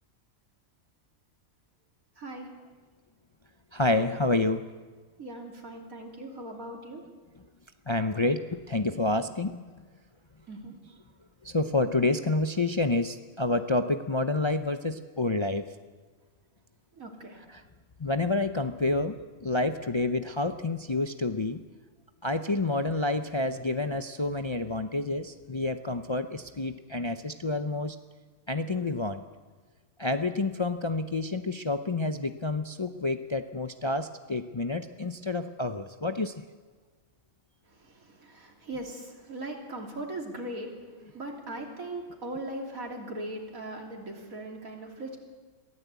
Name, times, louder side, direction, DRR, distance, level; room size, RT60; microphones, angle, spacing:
voice 1, 2.2-2.5 5.2-7.0 10.5-10.7 17.0-17.4 37.8-40.7 41.1-45.2, right 1 dB, 90° right, 2 dB, 3.4 m, -39 dB
voice 2, 3.7-4.6 7.9-9.6 11.4-15.6 17.5-17.6 18.0-19.2 19.4-21.6 22.2-28.0 28.5-29.2 30.0-36.3, left 2 dB, 35° left, 8 dB, 0.5 m, -28 dB
22.5 x 15.0 x 8.2 m, 1.4 s
omnidirectional pair, 1.4 m